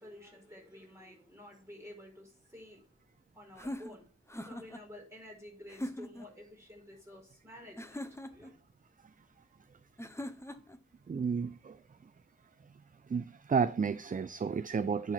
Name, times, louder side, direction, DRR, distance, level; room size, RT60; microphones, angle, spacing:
voice 1, 0.0-2.9 3.3-4.0 4.4-8.6, left 1 dB, 10° right, 4.7 m, -51 dB
sound 1, 3.6-4.8 5.7-6.3 7.8-8.5 10.0-10.8, left 1 dB, 10° left, 0.8 m, -41 dB
voice 2, 11.1-12.1 12.6-12.8 13.0-15.1, right 6 dB, 30° right, 0.4 m, -33 dB
9.9 x 4.5 x 5.6 m
wide cardioid pair, 75°, 29 cm